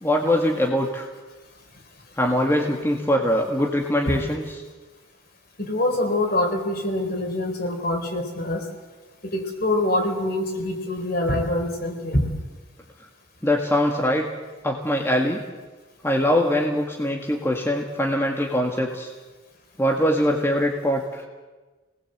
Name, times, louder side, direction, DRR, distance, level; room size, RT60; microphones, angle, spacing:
voice 1, 0.0-1.1 2.2-4.4 13.4-14.3 14.6-15.4 16.0-19.1 19.8-21.2, left 1 dB, 10° left, 0 dB, 1.9 m, -22 dB
voice 2, 5.6-8.6 9.2-12.2, left 1 dB, 50° left, 3 dB, 4.5 m, -25 dB
29.0 x 19.5 x 8.0 m, 1.3 s
head